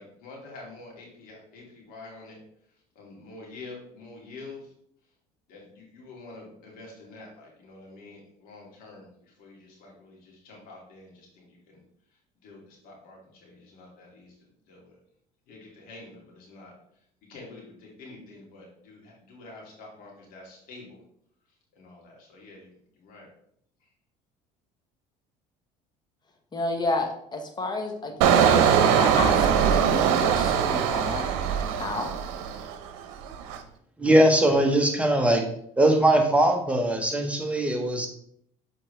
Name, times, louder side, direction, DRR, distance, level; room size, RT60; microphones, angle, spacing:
voice 1, 0.0-2.4 3.0-4.7 5.5-11.8 12.4-14.3 14.7-14.9 15.5-16.7 17.3-21.0 21.8-22.7 23.0-23.3, left 3 dB, 65° left, -3 dB, 2.6 m, -47 dB
voice 2, 26.5-31.3 31.6-32.1, left 2 dB, 25° left, 4 dB, 1.3 m, -31 dB
Engine, 28.2-32.9 33.2-33.6, right 8 dB, 85° right, 0.7 m, -22 dB
voice 3, 34.0-35.4 35.8-38.1, right 1 dB, 10° right, 2 dB, 1.2 m, -21 dB
7.0 x 4.4 x 3.3 m, 0.70 s
supercardioid pair, 100°, 16 cm